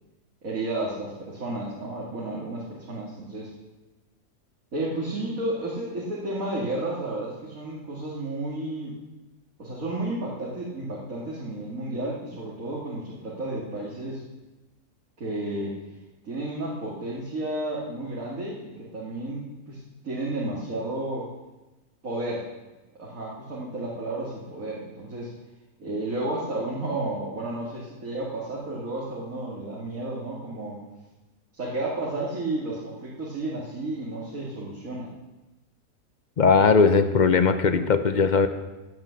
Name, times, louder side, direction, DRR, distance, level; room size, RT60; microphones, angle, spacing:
voice 1, 0.4-3.5 4.7-9.0 9.6-14.2 15.2-15.7 16.2-21.3 22.0-22.5 23.0-25.3 25.8-30.8 31.6-35.1, right 2 dB, 55° right, -5 dB, 2.7 m, -32 dB
voice 2, 36.4-38.5, left 5 dB, 45° left, 9 dB, 0.6 m, -19 dB
16.5 x 9.5 x 5.9 m, 1.1 s
omnidirectional pair, 1.7 m